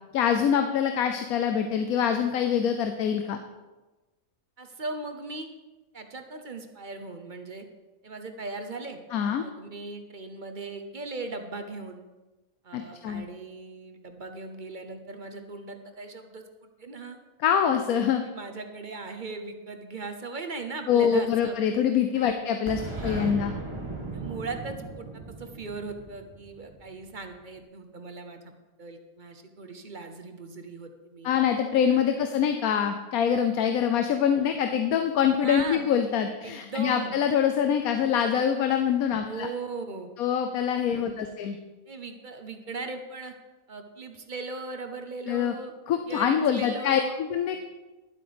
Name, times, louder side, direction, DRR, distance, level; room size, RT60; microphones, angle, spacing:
voice 1, 0.1-3.4 9.1-9.4 12.7-13.2 17.4-18.2 20.9-23.5 31.2-39.5 40.2-41.6 45.3-45.5 45.9-47.6, left 8 dB, 85° left, 6 dB, 1.2 m, -25 dB
voice 2, 4.6-5.5 5.9-7.6 8.0-9.0 9.4-12.0 12.6-17.2 18.2-21.6 22.1-22.5 22.9-23.4 24.1-28.4 28.8-31.3 32.1-32.2 35.4-35.8 36.4-37.1 39.2-40.1 40.9-41.4 41.9-43.3 43.7-45.7 46.1-47.1, right 3 dB, 40° right, 6 dB, 0.9 m, -38 dB
Boom, 22.7-27.3, right 3 dB, 20° right, 1.5 m, -37 dB
12.0 x 8.0 x 5.1 m, 1.2 s
omnidirectional pair, 1.5 m